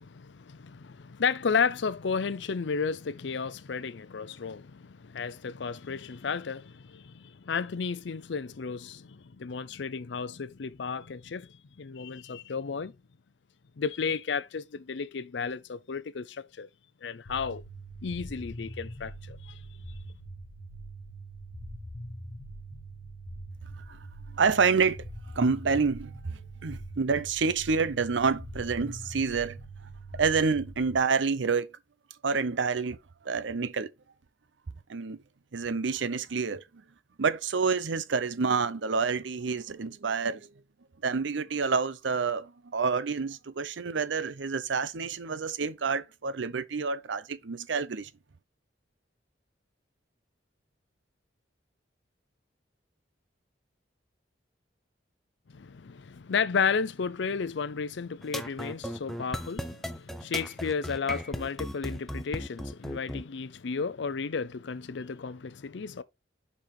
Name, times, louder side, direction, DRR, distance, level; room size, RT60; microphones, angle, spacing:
voice 1, 0.0-12.9 13.8-16.7 17.0-17.6 18.0-19.6 55.5-66.0, left 5 dB, 70° left, 0.5 m, -33 dB
sound 1, 17.3-31.0, right 1 dB, 85° left, 1.3 m, -43 dB
voice 2, 24.3-29.6 30.1-31.7 32.2-33.0 33.2-33.9 34.9-35.2 35.5-36.8 37.2-40.5 41.0-48.1, right 5 dB, 75° right, 0.6 m, -28 dB
sound 2, 58.2-63.2, equal, ahead, 0.5 m, -36 dB
5.4 x 4.8 x 4.3 m
head